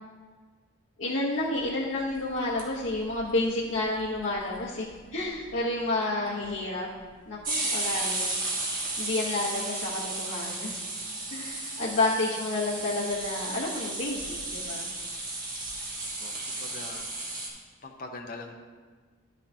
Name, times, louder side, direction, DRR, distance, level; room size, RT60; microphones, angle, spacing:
voice 1, 1.0-4.9 5.1-6.9 7.3-8.4 9.0-10.7 11.3-14.9, left 2 dB, 75° left, -7 dB, 1.1 m, -30 dB
sound 1, 2.3-3.1 3.4-3.5 3.7-3.8 4.0-4.6 4.9-5.0 5.3-5.6 6.4-6.5 7.4-17.5, right 2 dB, 45° right, 1.4 m, -34 dB
voice 2, 16.0-17.1 17.8-18.5, left 3 dB, 45° left, 3 dB, 0.8 m, -43 dB
11.5 x 6.4 x 2.8 m, 1.5 s
head